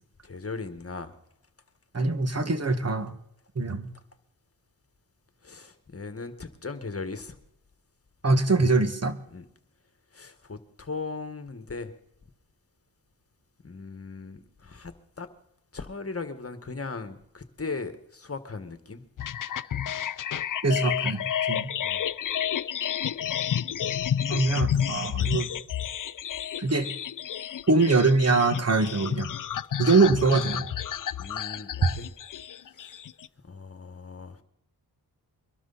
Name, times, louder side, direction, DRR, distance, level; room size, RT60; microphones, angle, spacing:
voice 1, 0.2-1.1 5.4-7.4 9.3-9.5 10.1-11.9 13.6-15.3 15.7-19.1 21.8-22.0 31.2-32.1 32.7-33.0 33.4-34.4, left 4 dB, 35° left, 9 dB, 1.7 m, -38 dB
voice 2, 1.9-3.1 3.6-3.9 8.2-9.2 20.6-21.7 24.3-25.5 26.6-26.9 27.7-29.3 29.8-30.7, right 3 dB, 40° right, 8 dB, 1.8 m, -23 dB
sound 1, 19.2-33.3, left 10 dB, 50° left, 0.6 m, -31 dB
23.0 x 12.5 x 4.2 m, 0.78 s
cardioid pair, 60°, 40 cm